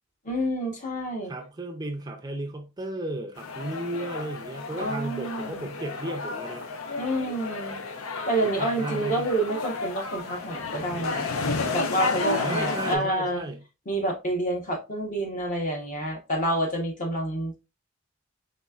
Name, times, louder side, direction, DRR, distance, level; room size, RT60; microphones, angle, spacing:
voice 1, 0.2-1.3 4.8-5.7 7.0-7.8 8.3-11.3 11.7-13.4 13.9-17.6, right 1 dB, 40° left, 1.0 m, -28 dB
voice 2, 1.3-6.6 8.4-9.3 12.3-13.6, right 1 dB, 20° right, 0.4 m, -34 dB
sound 1, 3.4-13.0, left 3 dB, 85° left, 0.6 m, -32 dB
4.2 x 3.2 x 2.4 m
head